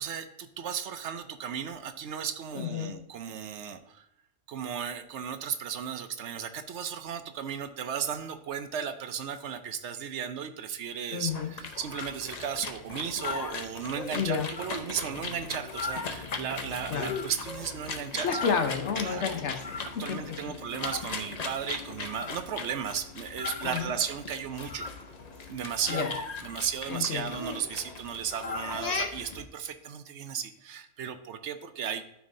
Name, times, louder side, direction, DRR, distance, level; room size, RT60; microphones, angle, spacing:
voice 1, 0.0-4.1 4.5-18.4 19.0-19.4 20.0-24.9 25.5-26.1 26.4-32.1, right 8 dB, 70° right, 9 dB, 0.9 m, -35 dB
voice 2, 2.5-2.9 11.1-11.5 14.1-14.5 16.9-17.1 18.1-20.3 23.6-23.9 25.9-26.1 26.9-27.4, left 6 dB, 65° left, 6 dB, 1.1 m, -31 dB
sound 1, 11.3-29.4, left 4 dB, 40° left, 0.7 m, -37 dB
12.0 x 4.7 x 2.6 m, 0.81 s
omnidirectional pair, 1.3 m